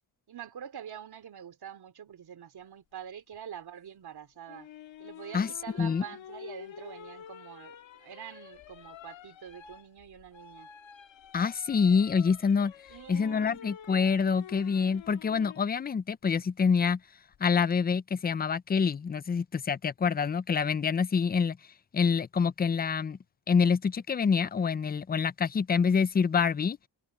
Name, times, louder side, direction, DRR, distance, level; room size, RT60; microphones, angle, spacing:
voice 1, 0.3-4.7 5.0-10.7 12.9-13.6, right 9 dB, 60° right, 3.0 m, -45 dB
sound 1, 4.5-15.7 17.3-17.7, left 9 dB, 90° left, 1.9 m, -49 dB
voice 2, 11.3-12.7 13.1-17.0 17.4-21.6 21.9-23.2 23.5-26.8, left 6 dB, 20° left, 0.4 m, -26 dB
wide cardioid pair, 155°, 44 cm